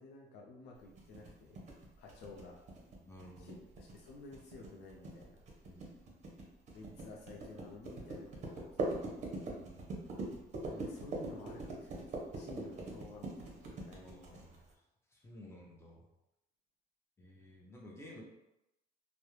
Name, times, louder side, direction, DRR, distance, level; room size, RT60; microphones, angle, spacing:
voice 1, 0.0-1.7 2.0-2.6 3.4-5.9 6.7-9.3 10.6-14.5, left 2 dB, 80° left, -1 dB, 0.5 m, -53 dB
sound 1, 1.0-14.7, right 2 dB, 45° right, 0.6 m, -42 dB
voice 2, 2.9-3.6 5.7-6.3 9.5-10.4 14.0-14.5 15.1-16.0 17.2-18.2, left 1 dB, 15° left, -2 dB, 0.6 m, -55 dB
2.3 x 2.0 x 3.0 m, 0.90 s
cardioid pair, 110°, 17 cm